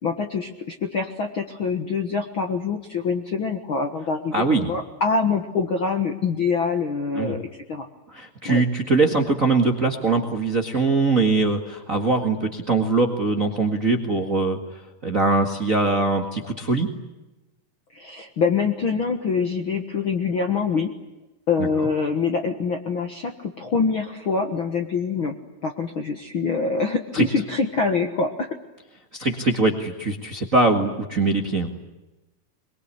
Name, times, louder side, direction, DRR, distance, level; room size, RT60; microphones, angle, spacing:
voice 1, 0.0-7.9 8.4-8.6 17.9-20.9 21.5-25.4 25.6-28.6, left 5 dB, 50° left, 5 dB, 1.5 m, -25 dB
voice 2, 4.3-4.7 7.1-7.3 8.1-16.9 21.6-21.7 27.1-27.3 29.1-31.7, right 3 dB, 35° right, 3 dB, 1.5 m, -22 dB
23.5 x 23.0 x 9.8 m, 1.0 s
omnidirectional pair, 4.2 m